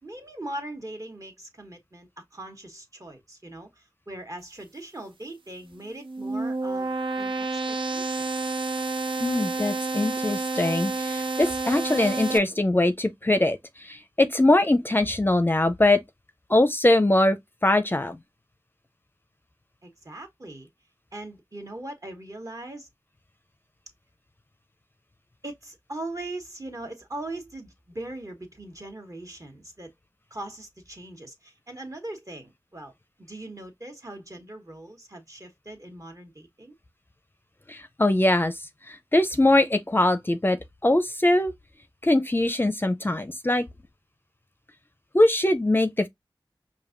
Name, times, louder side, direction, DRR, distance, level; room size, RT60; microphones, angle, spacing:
voice 1, 0.0-8.3 19.8-20.7 21.1-22.9 25.4-29.9 30.3-32.9 33.2-36.7, right 1 dB, 40° right, 1.4 m, -40 dB
sound 1, 5.9-12.4, right 3 dB, 75° right, 0.6 m, -29 dB
voice 2, 9.2-16.0 16.5-18.2 37.7-38.6 38.9-41.5 42.0-43.6 45.1-46.1, left 1 dB, 25° left, 0.5 m, -22 dB
5.1 x 2.6 x 2.5 m
wide cardioid pair, 50°, 9 cm